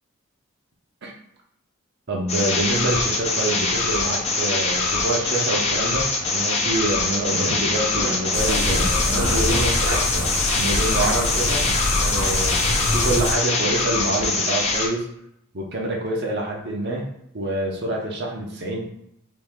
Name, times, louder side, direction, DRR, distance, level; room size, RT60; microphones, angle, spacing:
voice 1, 2.1-9.8 10.6-11.6 12.0-15.1 15.5-17.0 17.3-18.8, right 1 dB, 55° right, -2 dB, 0.8 m, -26 dB
sound 1, 2.3-14.9, left 3 dB, 30° left, 0.5 m, -23 dB
sound 2, 7.1-7.6 8.0-8.2 8.4-10.4 10.7-11.8 12.1-12.3, right 1 dB, 90° right, 0.9 m, -29 dB
sound 3, 8.3-13.3, left 1 dB, 80° left, 0.7 m, -25 dB
3.1 x 3.1 x 3.6 m, 0.76 s
head